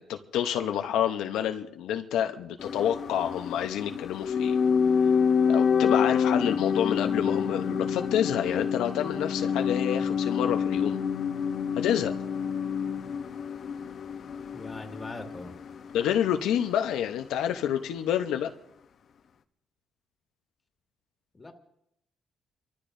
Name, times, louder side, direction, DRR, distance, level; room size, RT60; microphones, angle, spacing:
voice 1, 0.0-4.6 5.5-11.0 11.7-12.1 15.9-18.5, left 10 dB, 90° left, 6 dB, 0.7 m, -28 dB
sound 1, 2.6-16.7 16.9-17.0, left 6 dB, 55° left, 0.8 m, -27 dB
voice 2, 14.5-15.6 21.3-21.5, left 2 dB, 25° left, 4 dB, 2.0 m, -41 dB
28.5 x 13.5 x 2.6 m, 0.77 s
cardioid pair, 90°, 0 cm